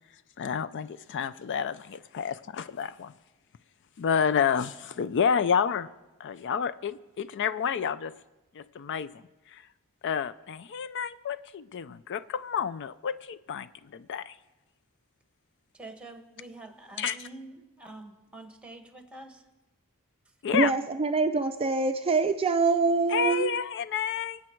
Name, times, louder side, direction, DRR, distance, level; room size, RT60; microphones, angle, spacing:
voice 1, 0.4-3.1 4.0-5.9 6.2-8.1 8.6-9.2 9.5-9.6 10.0-14.3 17.0-17.3 20.4-20.7 23.1-24.4, left 7 dB, 55° left, 14 dB, 0.4 m, -29 dB
voice 2, 15.7-19.4, right 2 dB, 5° right, 5 dB, 1.4 m, -46 dB
voice 3, 20.5-23.5, right 4 dB, 25° right, 7 dB, 0.4 m, -25 dB
24.0 x 8.6 x 4.5 m, 1.1 s
head